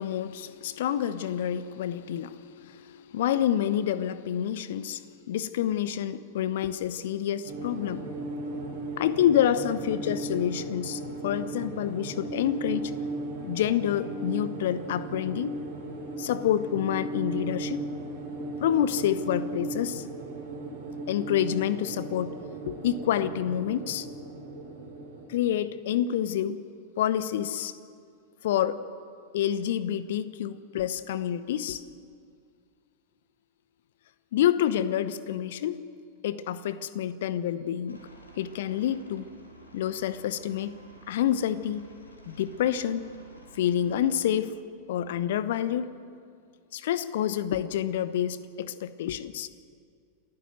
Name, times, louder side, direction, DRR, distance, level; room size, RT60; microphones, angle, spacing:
voice 1, 0.0-8.1 9.0-12.9 13.4-15.5 16.2-17.8 18.6-20.0 21.1-22.3 22.7-24.1 25.3-26.6 27.0-27.7 28.4-28.8 29.3-31.8 34.3-35.8 36.2-38.0 38.4-39.3 39.7-40.7 41.1-41.8 42.3-43.1 43.5-44.5 44.9-45.9 46.7-49.5, left 10 dB, 55° left, 15 dB, 0.9 m, -28 dB
sound 1, 7.4-25.2, right 2 dB, 55° right, 7.5 m, -36 dB
Aircraft, 37.9-44.2, right 1 dB, 80° left, 4.2 m, -52 dB
28.0 x 14.5 x 7.8 m, 2.3 s
figure-of-eight pair, 90°, 0 cm